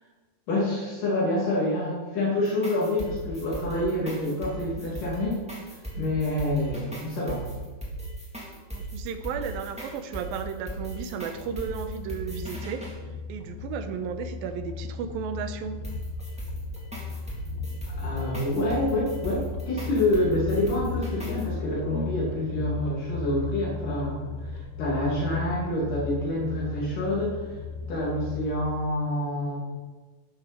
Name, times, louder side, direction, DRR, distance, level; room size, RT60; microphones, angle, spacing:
voice 1, 0.5-7.4 17.9-27.6 27.9-29.6, left 1 dB, 65° left, -6 dB, 4.5 m, -27 dB
sound 1, 2.4-12.9 15.8-21.4, right 1 dB, ahead, 2.9 m, -38 dB
voice 2, 8.7-12.8 13.3-15.8, right 6 dB, 90° right, 9 dB, 2.7 m, -34 dB
sound 2, 11.3-28.7, left 4 dB, 80° left, 3.0 m, -36 dB
13.0 x 12.0 x 4.5 m, 1.3 s
omnidirectional pair, 4.1 m